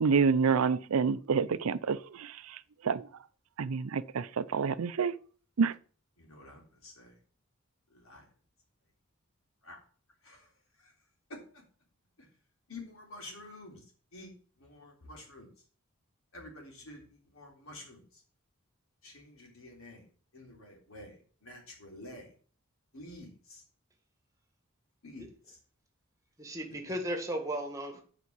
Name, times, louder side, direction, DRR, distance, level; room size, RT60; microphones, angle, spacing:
voice 1, 0.0-2.3 2.8-3.0 3.6-5.1 5.6-5.7, right 5 dB, 85° right, 0.5 m, -27 dB
voice 2, 6.2-7.1 7.9-8.2 9.6-9.8 10.2-10.5 12.7-13.8 14.1-14.3 14.6-15.5 16.3-17.0 17.3-18.0 19.0-20.1 20.3-22.3 22.9-23.6 25.0-25.3, left 2 dB, 80° left, 3.4 m, -49 dB
voice 3, 26.4-28.0, right 1 dB, 15° right, 1.8 m, -35 dB
8.4 x 5.1 x 6.1 m
head